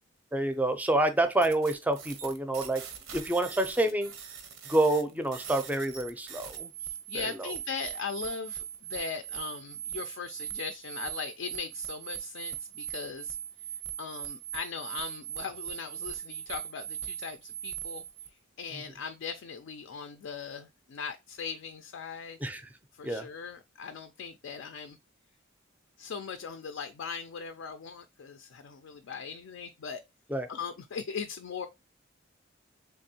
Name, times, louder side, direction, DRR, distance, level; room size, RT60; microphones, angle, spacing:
voice 1, 0.3-2.8 3.1-4.1 4.7-6.7 22.4-22.6 23.0-23.3 30.3-30.5, right 2 dB, 10° right, 0.5 m, -27 dB
sound 1, 1.4-18.3, right 10 dB, 85° right, 0.8 m, -40 dB
voice 2, 6.8-13.4 14.0-18.0 18.6-22.4 22.9-25.0 26.0-30.0 30.5-31.7, left 6 dB, 65° left, 0.4 m, -39 dB
3.6 x 3.3 x 2.7 m
head